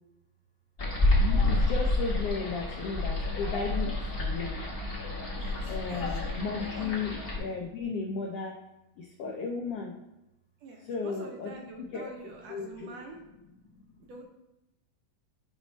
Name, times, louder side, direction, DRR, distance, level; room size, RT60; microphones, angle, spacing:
sound 1, 0.8-7.4, left 2 dB, 45° left, 0.7 m, -29 dB
voice 1, 1.2-4.6 5.4-8.6 9.0-9.9 10.8-13.0 13.6-14.1, left 4 dB, 85° left, 1 dB, 1.3 m, -35 dB
voice 2, 5.4-6.9 10.6-13.2 14.0-14.2, right 2 dB, 70° right, 1 dB, 1.7 m, -47 dB
8.4 x 3.1 x 5.4 m, 0.91 s
omnidirectional pair, 3.6 m